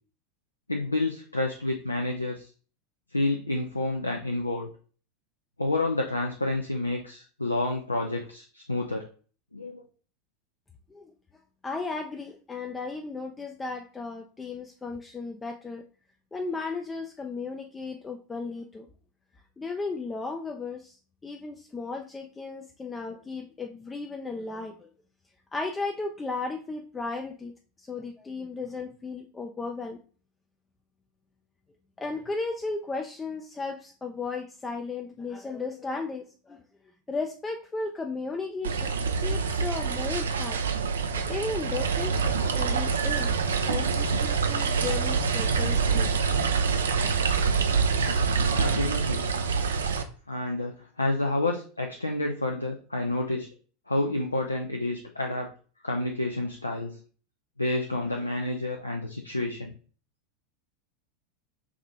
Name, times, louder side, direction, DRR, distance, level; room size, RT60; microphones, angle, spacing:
voice 1, 0.7-2.5 3.1-4.7 5.6-9.1 9.5-9.8 48.5-49.2 50.3-53.5 53.9-55.5 55.8-57.0 57.6-59.7, left 2 dB, 85° left, 2 dB, 0.5 m, -29 dB
voice 2, 11.6-15.8 16.3-18.9 19.6-20.9 21.2-24.9 25.5-27.5 27.8-30.0 32.0-36.6 37.1-38.9 39.2-40.6 40.9-43.3 43.6-46.2, left 3 dB, 15° left, 3 dB, 0.4 m, -35 dB
sound 1, 38.6-50.0, right 5 dB, 70° right, 0.4 m, -26 dB
4.8 x 2.7 x 3.5 m, 0.40 s
figure-of-eight pair, 85°, 0 cm